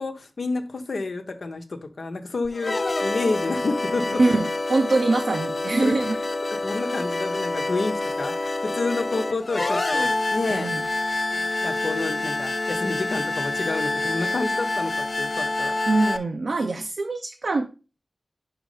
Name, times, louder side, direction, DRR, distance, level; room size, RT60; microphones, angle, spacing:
voice 1, 0.0-2.8 3.0-4.2 5.8-6.2 6.6-10.7 11.3-15.7, left 3 dB, 75° left, 6 dB, 0.9 m, -29 dB
sound 1, 2.4-16.2, left 2 dB, 55° left, 0.6 m, -27 dB
voice 2, 4.2-6.2 10.5-10.8 15.9-17.7, right 3 dB, 70° right, 4 dB, 0.6 m, -23 dB
5.2 x 4.8 x 4.8 m, 0.32 s
wide cardioid pair, 80°, 0 cm